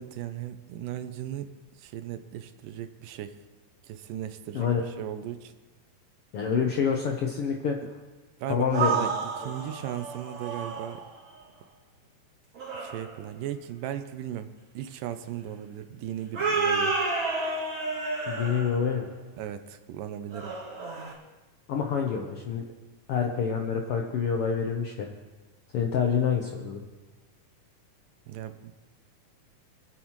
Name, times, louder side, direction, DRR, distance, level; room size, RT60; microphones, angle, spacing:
voice 1, 0.0-1.5 1.8-3.4 3.8-5.5 8.4-11.0 12.7-17.0 19.4-20.5 28.3-28.7, right 11 dB, 80° right, 10 dB, 2.2 m, -37 dB
voice 2, 6.3-7.8 8.5-9.1 9.4-9.5 18.3-19.1 21.7-22.6 23.1-25.1 25.7-26.8, left 6 dB, 80° left, 1 dB, 1.3 m, -27 dB
sound 1, 8.6-11.1 12.5-13.2 16.3-18.9 20.3-21.1, right 4 dB, 40° right, 2.9 m, -30 dB
24.5 x 9.5 x 3.1 m, 1.2 s
omnidirectional pair, 3.9 m